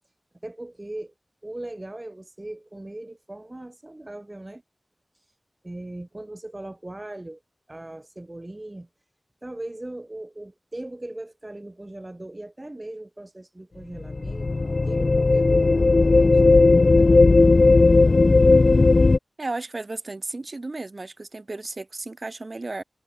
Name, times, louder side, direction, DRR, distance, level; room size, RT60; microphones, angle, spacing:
voice 1, 0.4-1.1 1.4-4.6 5.6-7.4 7.7-8.9 9.4-16.6 17.0-17.6, right 1 dB, 25° right, 2.1 m, -39 dB
sound 1, 14.0-19.2, left 3 dB, 50° left, 0.5 m, -16 dB
voice 2, 19.4-22.8, right 2 dB, 45° right, 1.8 m, -34 dB
wide cardioid pair, 70°, 0 cm